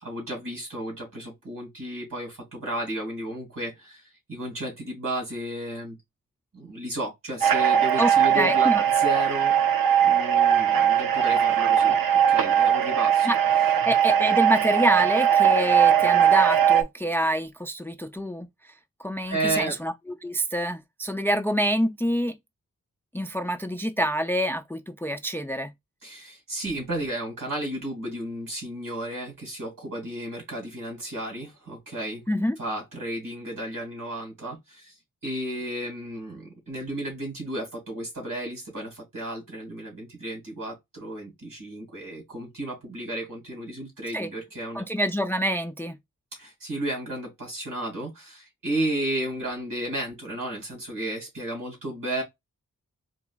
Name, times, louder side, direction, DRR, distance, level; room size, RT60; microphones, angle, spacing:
voice 1, 0.0-6.0 6.5-9.6 10.0-11.9 12.3-13.3 19.3-19.8 26.0-32.2 32.6-34.9 35.2-44.9 46.3-52.2, right 1 dB, 70° right, 2.5 m, -33 dB
Radio noise, 7.4-16.8, right 9 dB, 85° right, 0.6 m, -20 dB
voice 2, 8.0-8.8 13.3-13.4 13.9-18.5 19.0-19.9 20.2-22.3 23.1-25.7 32.3-32.6 44.1-44.3 44.7-46.0, equal, 5° left, 0.4 m, -26 dB
4.0 x 2.9 x 2.4 m
cardioid pair, 55°, 34 cm